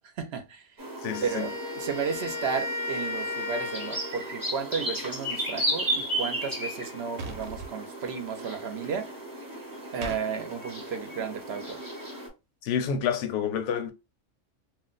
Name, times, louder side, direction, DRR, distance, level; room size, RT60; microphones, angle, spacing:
voice 1, 0.2-0.9 1.2-9.1 9.9-11.8, right 6 dB, 65° right, 0.9 m, -33 dB
sound 1, 0.8-12.3, right 1 dB, 20° right, 0.8 m, -35 dB
voice 2, 1.0-1.5 12.6-13.9, left 7 dB, 75° left, 0.9 m, -28 dB
Wind instrument woodwind instrument, 1.1-4.5, left 2 dB, 30° left, 0.4 m, -35 dB
sound 2, 7.2-7.7 10.0-10.2, right 3 dB, 85° right, 1.0 m, -37 dB
2.5 x 2.1 x 3.8 m
omnidirectional pair, 1.3 m